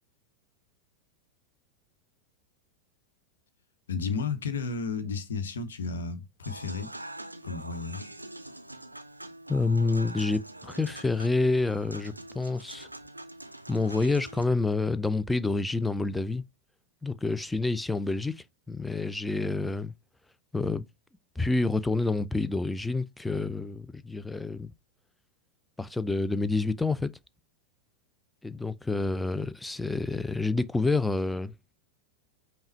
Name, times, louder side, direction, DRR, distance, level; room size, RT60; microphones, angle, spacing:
voice 1, 3.9-6.9 7.4-8.1, left 5 dB, 65° left, 0.9 m, -33 dB
Human voice / Acoustic guitar / Piano, 6.4-14.4, right 1 dB, 85° right, 0.4 m, -44 dB
voice 2, 9.5-12.9 13.7-16.4 17.0-19.9 20.5-20.9 21.4-24.7 25.8-27.1 28.4-31.5, left 3 dB, 5° left, 0.3 m, -28 dB
5.4 x 2.2 x 4.4 m
figure-of-eight pair, 90°, 0 cm